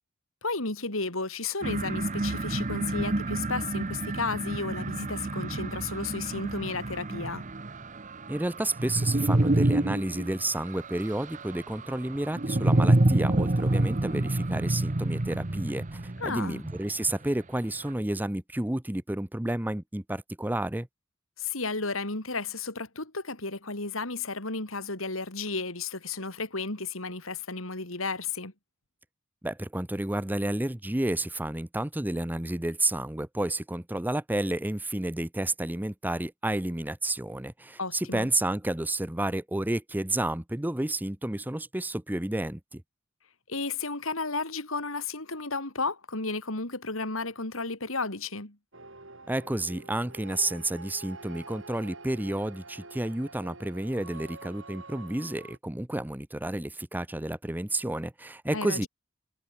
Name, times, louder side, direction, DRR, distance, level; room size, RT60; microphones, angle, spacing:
voice 1, 0.4-7.4 16.2-16.6 21.4-28.5 37.8-38.3 43.5-48.6 58.5-58.9, left 3 dB, 80° left, 4.6 m, -33 dB
sound 1, 1.6-17.1, right 2 dB, 40° right, 1.0 m, -28 dB
voice 2, 8.3-20.9 29.4-42.8 49.3-58.9, right 1 dB, 10° right, 0.7 m, -31 dB
sound 2, 48.7-55.6, right 3 dB, 65° right, 7.6 m, -47 dB
head